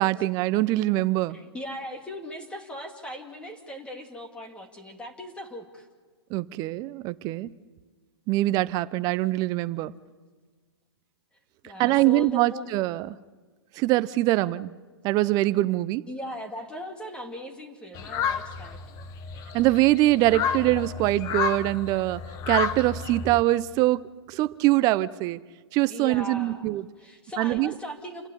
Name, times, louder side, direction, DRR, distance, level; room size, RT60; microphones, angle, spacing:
voice 1, 0.0-1.4 6.3-7.5 8.3-9.9 11.8-13.1 13.8-14.7 15.0-16.0 19.5-22.2 22.5-25.4 25.7-26.8 27.4-27.7, right 17 dB, 25° right, 0.7 m, -23 dB
voice 2, 1.3-5.9 11.6-12.7 16.1-18.8 25.9-26.7 27.0-28.3, left 1 dB, 10° left, 2.3 m, -38 dB
sound 1, 17.9-23.4, left 7 dB, 25° left, 1.1 m, -31 dB
28.5 x 12.0 x 9.9 m
hypercardioid pair, 145°, 14 cm